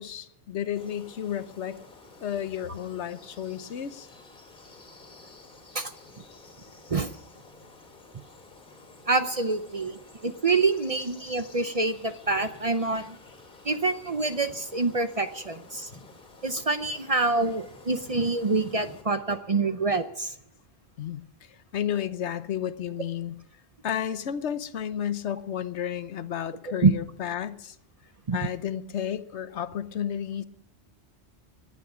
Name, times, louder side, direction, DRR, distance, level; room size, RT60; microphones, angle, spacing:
voice 1, 0.0-1.8 2.2-4.1 11.2-11.4 21.0-21.2 21.5-23.4 23.8-27.8 28.3-30.4, left 9 dB, 80° left, 13 dB, 1.1 m, -32 dB
sound 1, 0.8-19.0, left 3 dB, 50° left, 3.3 m, -51 dB
voice 2, 9.1-13.2 13.6-15.9 16.4-20.3 26.8-26.9 28.3-28.4, right 3 dB, 35° right, 10 dB, 0.7 m, -26 dB
18.5 x 11.0 x 6.1 m, 0.77 s
omnidirectional pair, 1.1 m